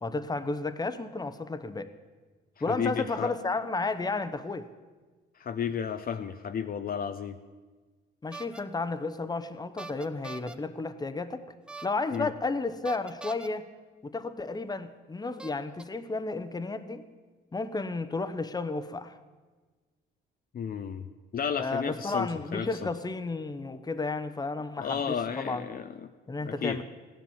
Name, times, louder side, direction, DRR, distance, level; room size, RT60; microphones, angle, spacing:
voice 1, 0.0-1.9 2.6-4.7 8.2-11.4 11.8-13.7 14.0-17.0 17.5-19.2 21.6-25.7 26.3-26.8, left 3 dB, 20° left, 11 dB, 0.9 m, -32 dB
voice 2, 2.7-3.3 5.4-7.4 12.1-12.3 20.5-21.1 21.3-22.7 24.8-26.1 26.4-26.8, left 7 dB, 50° left, 8 dB, 0.6 m, -33 dB
sound 1, 8.3-8.6 9.8-10.5 11.7-12.2 12.8-13.5 14.5-14.6 15.4-15.8, right 3 dB, 5° right, 0.7 m, -43 dB
15.0 x 10.5 x 7.2 m, 1.4 s
cardioid pair, 90°, 20 cm